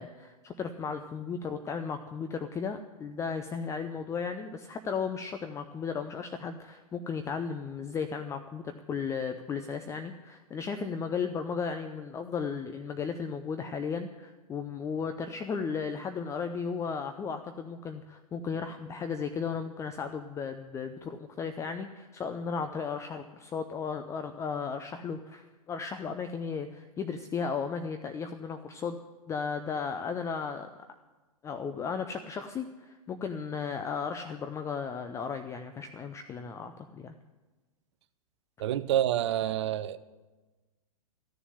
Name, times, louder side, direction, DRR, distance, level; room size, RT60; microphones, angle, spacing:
voice 1, 0.0-29.0 29.3-30.7 31.4-37.1, left 6 dB, 15° left, 8 dB, 0.6 m, -35 dB
voice 2, 38.6-40.0, right 12 dB, 50° right, 14 dB, 0.7 m, -28 dB
14.0 x 7.0 x 9.8 m, 1.2 s
figure-of-eight pair, 105°, 18 cm